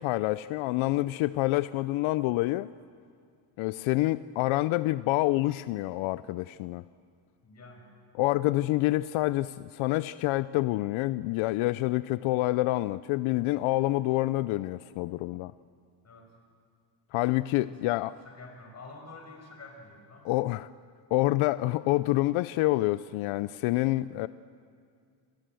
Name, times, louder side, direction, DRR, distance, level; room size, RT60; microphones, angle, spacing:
voice 1, 0.0-2.7 3.6-6.8 8.1-15.5 17.1-18.1 20.2-20.7 21.1-24.3, left 18 dB, 85° left, 16 dB, 0.6 m, -27 dB
voice 2, 7.4-7.9 16.0-16.3 17.6-17.8 18.2-20.3, left 3 dB, 35° left, 2 dB, 5.7 m, -48 dB
27.5 x 18.0 x 7.7 m, 2.2 s
cardioid pair, 125°, 47 cm